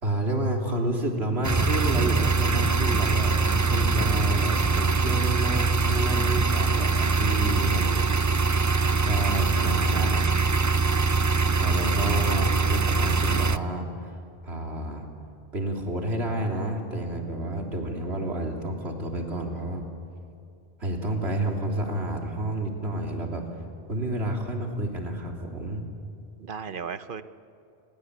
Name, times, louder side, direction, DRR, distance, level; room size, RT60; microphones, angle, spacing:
voice 1, 0.0-8.0 9.0-10.1 11.6-14.1 14.4-15.1 15.5-19.8 20.8-23.4 23.9-25.8, right 1 dB, 70° right, 1 dB, 3.6 m, -30 dB
sound 1, 1.4-13.6, right 4 dB, 25° right, 0.4 m, -23 dB
voice 2, 7.6-8.1 9.9-10.3 26.4-27.2, right 6 dB, 55° right, 12 dB, 1.1 m, -36 dB
28.5 x 21.5 x 8.2 m, 2.7 s
omnidirectional pair, 1.1 m